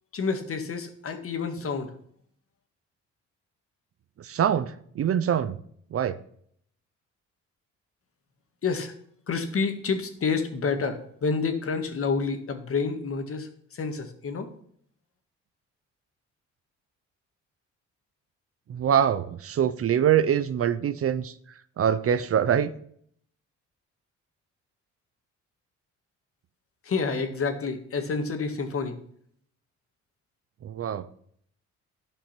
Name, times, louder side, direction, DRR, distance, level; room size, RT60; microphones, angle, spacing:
voice 1, 0.1-1.9 8.6-8.9 9.3-14.5 26.8-29.0, left 4 dB, 45° left, 6 dB, 1.9 m, -29 dB
voice 2, 4.2-5.6 5.9-6.2 18.7-21.3 21.8-22.7 30.6-31.1, right 9 dB, 50° right, 14 dB, 0.7 m, -24 dB
11.5 x 5.5 x 5.9 m, 0.64 s
cardioid pair, 90°, 30 cm